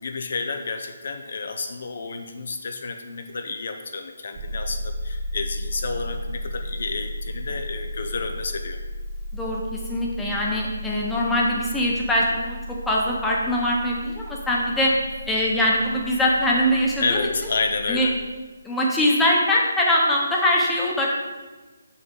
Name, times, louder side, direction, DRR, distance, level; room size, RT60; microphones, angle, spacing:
voice 1, 0.0-8.8 17.0-18.2, left 4 dB, 60° left, 6 dB, 0.5 m, -30 dB
sound 1, 4.3-18.2, equal, 35° right, 0.9 m, -34 dB
voice 2, 9.3-14.9 15.3-17.3 17.9-18.1 18.6-21.1, left 1 dB, 5° left, -4 dB, 1.0 m, -22 dB
6.2 x 5.7 x 3.8 m, 1.3 s
figure-of-eight pair, 155°, 0 cm